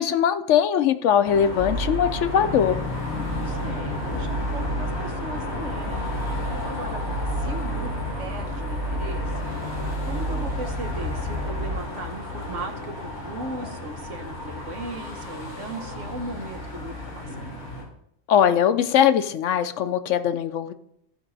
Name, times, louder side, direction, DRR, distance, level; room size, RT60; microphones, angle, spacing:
voice 1, 0.0-2.8 18.3-20.7, left 9 dB, 80° left, 10 dB, 1.0 m, -21 dB
sound 1, 1.2-17.8, left 2 dB, 60° left, 3.2 m, -33 dB
sound 2, 1.6-11.8, right 1 dB, 45° right, 1.9 m, -31 dB
voice 2, 3.4-7.0 7.3-7.9 8.2-9.4 10.0-17.6, right 2 dB, 75° right, 5 dB, 1.5 m, -37 dB
14.5 x 5.4 x 4.1 m, 0.73 s
omnidirectional pair, 1.2 m